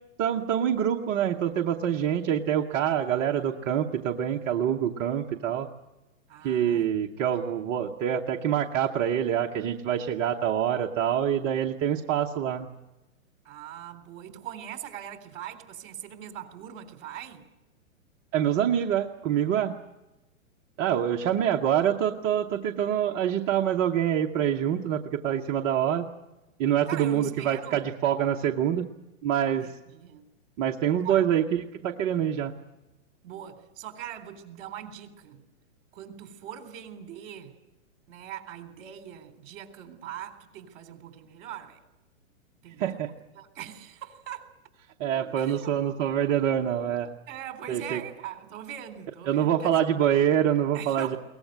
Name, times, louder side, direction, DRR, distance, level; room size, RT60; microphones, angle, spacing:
voice 1, 0.2-5.7 6.4-12.7 18.3-19.8 20.8-26.1 26.6-28.9 29.2-29.7 30.6-31.4 31.8-32.5 42.8-43.1 45.0-47.1 47.7-48.0 49.3-51.2, right 10 dB, 20° right, 1 dB, 0.7 m, -26 dB
voice 2, 6.3-6.9 7.2-7.6 13.4-17.5 26.9-27.9 29.6-30.2 31.0-31.3 33.2-35.4 35.9-37.5 38.1-41.8 42.6-44.5 45.3-45.9 47.3-49.7 50.7-51.2, right 10 dB, 40° right, 6 dB, 3.7 m, -42 dB
22.0 x 19.0 x 9.2 m, 1.0 s
hypercardioid pair, 155°, 41 cm